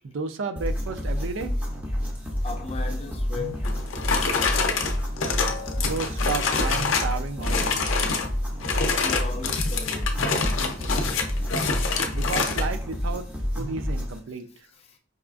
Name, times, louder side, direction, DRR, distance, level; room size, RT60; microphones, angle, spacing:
voice 1, 0.0-1.5 5.8-7.9 12.1-13.3 13.6-14.5, right 4 dB, 75° right, 0.4 m, -32 dB
sound 1, 0.6-14.2, equal, 10° right, 0.7 m, -29 dB
voice 2, 2.4-3.8 6.1-6.2 9.0-10.1 10.9-11.2, left 4 dB, 30° left, 0.4 m, -36 dB
sound 2, 3.6-7.1 7.4-8.3 8.6-12.7, left 4 dB, 90° left, 0.5 m, -26 dB
4.9 x 2.3 x 2.4 m
head